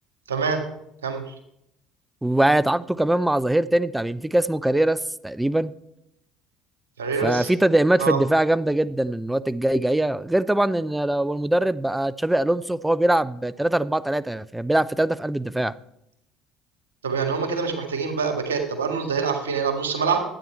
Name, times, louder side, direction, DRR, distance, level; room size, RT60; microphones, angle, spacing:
voice 1, 0.3-0.7 1.0-1.4 7.0-7.5 8.0-8.2 17.0-20.2, right 5 dB, 90° right, 1.7 m, -25 dB
voice 2, 2.2-5.7 7.2-15.7, right 1 dB, 10° right, 0.5 m, -22 dB
11.5 x 9.1 x 4.5 m
hypercardioid pair, 65°, 0 cm